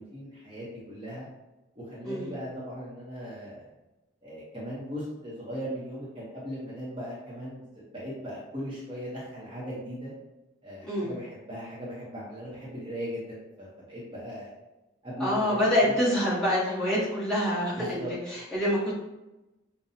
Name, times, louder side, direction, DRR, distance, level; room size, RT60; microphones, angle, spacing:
voice 1, 0.1-1.3 1.7-3.6 4.2-10.1 10.6-14.5 15.0-16.0 17.7-18.1, equal, 25° right, -8 dB, 0.9 m, -38 dB
voice 2, 15.2-19.0, equal, 5° left, -10 dB, 1.2 m, -26 dB
5.5 x 2.3 x 2.7 m, 1.0 s
head